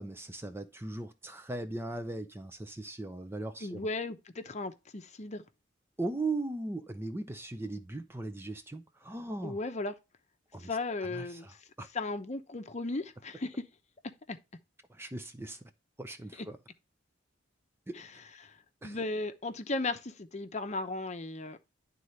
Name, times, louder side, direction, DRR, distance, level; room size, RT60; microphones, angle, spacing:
voice 1, 0.0-3.9 6.0-9.6 10.5-11.9 14.9-15.6 16.0-16.6 17.9-18.2 18.8-19.0, right 2 dB, 10° right, 0.6 m, -39 dB
voice 2, 3.6-5.4 9.4-9.9 10.6-11.6 11.9-13.5 14.3-14.4 18.0-18.1 18.4-18.5 18.8-21.6, left 2 dB, 35° left, 0.8 m, -36 dB
11.0 x 3.9 x 3.1 m
head